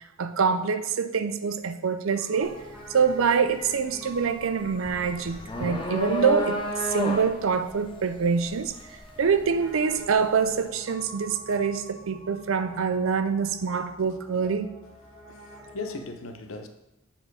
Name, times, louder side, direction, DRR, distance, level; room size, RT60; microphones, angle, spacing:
voice 1, 0.0-2.6 2.9-8.7 9.2-14.7, right 6 dB, 70° right, 0.5 m, -25 dB
Piano, 2.3-16.0, equal, 5° right, 1.7 m, -46 dB
sound 1, 2.4-2.7 3.1-10.1, left 1 dB, 25° left, 0.8 m, -32 dB
voice 2, 15.3-16.7, left 3 dB, 70° left, 0.7 m, -38 dB
7.7 x 4.4 x 4.8 m
head